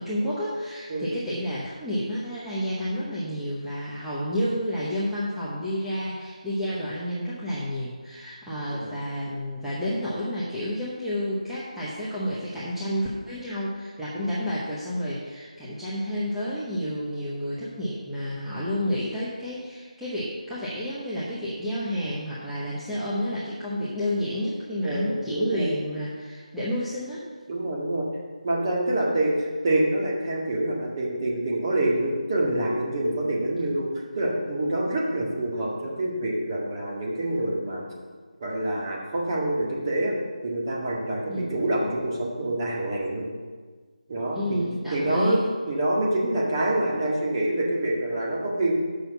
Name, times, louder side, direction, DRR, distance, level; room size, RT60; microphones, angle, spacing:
voice 1, 0.0-27.2 41.3-41.5 44.3-45.5, equal, ahead, -12 dB, 0.7 m, -30 dB
voice 2, 24.8-25.8 27.5-28.1 28.4-33.9 34.1-37.8 38.4-40.1 40.4-43.3 44.1-44.6 44.9-45.4 45.7-48.8, right 1 dB, 30° right, -3 dB, 1.8 m, -26 dB
6.4 x 5.6 x 6.8 m, 1.5 s
figure-of-eight pair, 165°, 4 cm